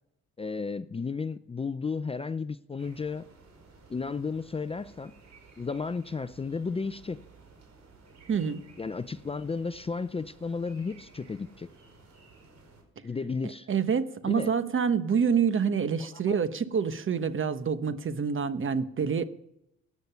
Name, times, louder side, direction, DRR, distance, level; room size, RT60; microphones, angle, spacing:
voice 1, 0.4-3.3 3.9-5.1 5.6-7.2 8.8-11.7 13.0-13.7 14.3-14.5 16.1-16.4, left 4 dB, 20° left, 13 dB, 0.5 m, -33 dB
sound 1, 2.8-12.8, right 4 dB, 60° right, 5.0 m, -55 dB
voice 2, 8.3-8.6 13.7-19.2, right 6 dB, 40° right, 11 dB, 1.2 m, -27 dB
16.5 x 9.6 x 5.7 m, 0.83 s
cardioid pair, 90°, 30 cm